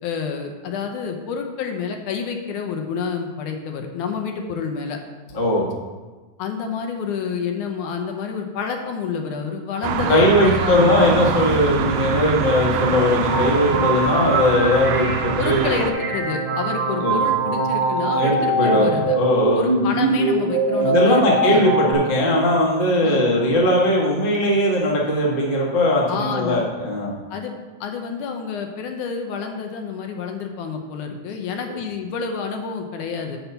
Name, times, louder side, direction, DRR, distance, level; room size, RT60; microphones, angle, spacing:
voice 1, 0.0-5.0 6.4-11.5 15.4-19.2 19.5-21.7 23.0-23.3 26.1-26.7 27.3-27.5 27.8-33.4, left 6 dB, 80° left, 4 dB, 2.2 m, -28 dB
voice 2, 5.3-5.7 10.1-15.8 17.0-17.2 18.0-19.6 20.8-27.1, left 1 dB, 40° left, -4 dB, 0.7 m, -19 dB
sound 1, 9.8-15.9, right 7 dB, 80° right, 1.6 m, -24 dB
sound 2, 13.2-21.9, right 2 dB, 60° right, 2.0 m, -22 dB
5.9 x 5.5 x 6.8 m, 1.3 s
omnidirectional pair, 3.6 m